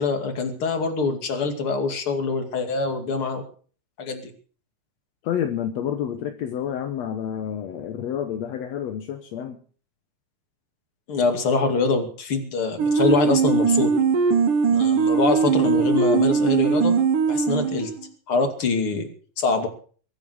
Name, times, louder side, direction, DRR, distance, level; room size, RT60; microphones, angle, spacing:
voice 1, 0.0-3.4 4.0-4.3 11.1-13.9 14.7-17.0 17.3-17.9 18.3-19.1 19.4-19.7, left 4 dB, 40° left, 3.0 m, -24 dB
voice 2, 5.2-9.6, left 9 dB, 65° left, 2.0 m, -29 dB
sound 1, 12.8-18.0, right 5 dB, 70° right, 3.5 m, -20 dB
23.5 x 9.0 x 6.3 m
omnidirectional pair, 3.9 m